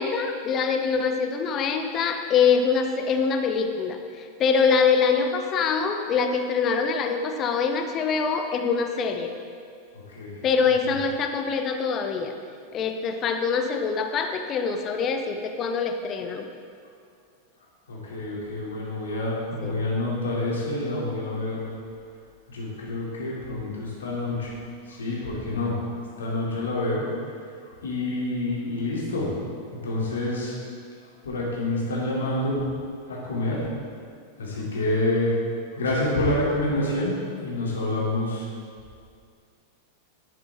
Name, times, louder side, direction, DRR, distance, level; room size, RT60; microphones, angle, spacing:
voice 1, 0.0-9.3 10.4-12.3 12.7-16.5 19.6-19.7, left 5 dB, 30° left, 6 dB, 0.9 m, -24 dB
voice 2, 9.9-10.4 10.9-11.0 17.9-21.7 22.5-24.5 24.9-25.8 26.2-27.0 27.6-29.3 29.7-30.5 31.2-32.6 33.1-33.7 34.4-35.3 35.7-37.1 37.4-38.5, left 2 dB, 70° left, -5 dB, 2.7 m, -27 dB
11.5 x 8.7 x 3.6 m, 2.3 s
figure-of-eight pair, 90°, 0 cm